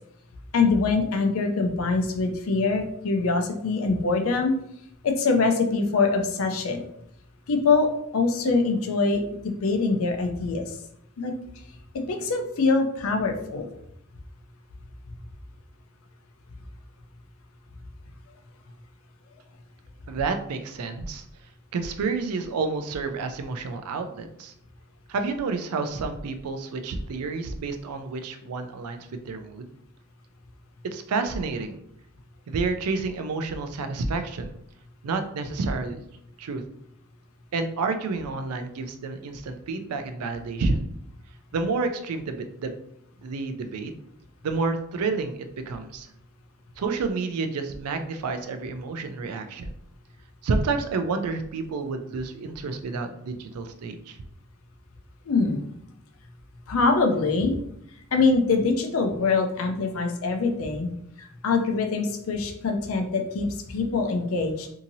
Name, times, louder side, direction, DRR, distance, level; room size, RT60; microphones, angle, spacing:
voice 1, 0.5-4.5 5.0-6.8 7.5-7.9 8.1-9.2 9.6-10.7 11.2-11.3 12.0-13.7 55.3-55.6 56.7-57.5 58.1-60.9 61.2-64.7, left 4 dB, 65° left, 4 dB, 0.5 m, -24 dB
voice 2, 20.1-21.2 21.7-24.5 25.1-29.7 30.8-31.8 32.5-34.5 35.0-36.0 36.4-36.6 37.5-40.9 41.5-42.8 43.2-43.9 44.4-46.1 46.8-49.7 50.4-54.2, right 4 dB, 85° right, 7 dB, 0.4 m, -29 dB
2.8 x 2.6 x 2.6 m, 0.74 s
head